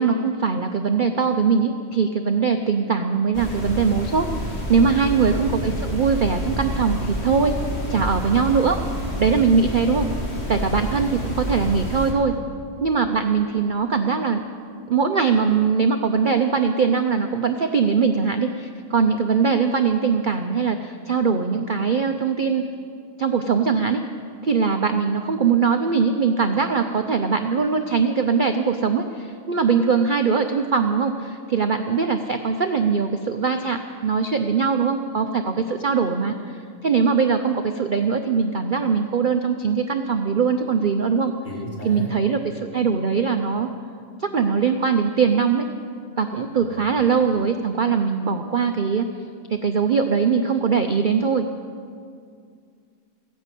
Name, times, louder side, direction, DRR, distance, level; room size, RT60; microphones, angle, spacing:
voice 1, 0.0-4.3 4.7-7.6 7.9-8.8 9.2-10.1 10.5-12.3 12.8-14.4 14.9-22.6 23.2-24.0 24.4-41.3 41.8-43.7 44.2-45.7 46.2-49.1 49.5-51.4, right 5 dB, 55° right, 6 dB, 0.5 m, -21 dB
sound 1, 3.3-12.1, equal, 40° left, 2.5 m, -29 dB
voice 2, 5.1-5.6 41.4-42.1 46.6-46.9, right 1 dB, 60° left, -4 dB, 3.8 m, -35 dB
15.5 x 10.5 x 8.3 m, 2.2 s
omnidirectional pair, 1.7 m